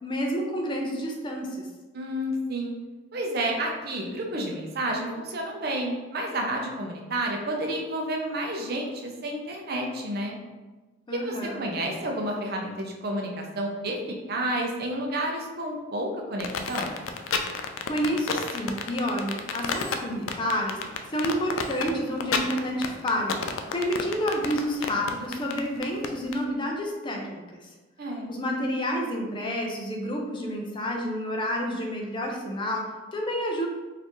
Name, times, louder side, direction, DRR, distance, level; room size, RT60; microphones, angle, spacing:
voice 1, 0.0-1.7 11.1-11.6 17.9-20.8 21.1-27.7 28.3-33.7, equal, 25° left, 0 dB, 0.5 m, -29 dB
voice 2, 1.9-2.7 3.1-10.4 11.1-14.0 14.3-17.0 28.0-28.3, right 1 dB, 55° right, 1 dB, 0.6 m, -30 dB
sound 1, 16.4-26.4, left 6 dB, 85° left, 0.4 m, -30 dB
4.1 x 2.6 x 3.0 m, 1.2 s
head